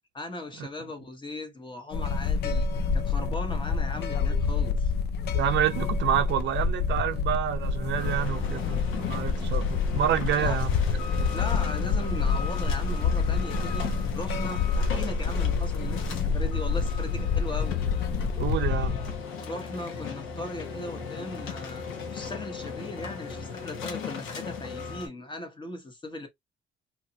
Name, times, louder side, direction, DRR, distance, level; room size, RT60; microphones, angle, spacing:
voice 1, 0.1-4.9 10.4-10.6 11.3-13.9 14.1-17.8 19.4-26.3, left 2 dB, 25° left, 0.9 m, -38 dB
sound 1, 1.9-19.2, left 5 dB, 55° left, 0.4 m, -27 dB
voice 2, 5.3-10.8 18.4-19.1, right 10 dB, 60° right, 0.6 m, -28 dB
sound 2, 8.0-25.1, left 5 dB, 80° left, 1.1 m, -37 dB
2.8 x 2.4 x 2.7 m
cardioid pair, 105°, 21 cm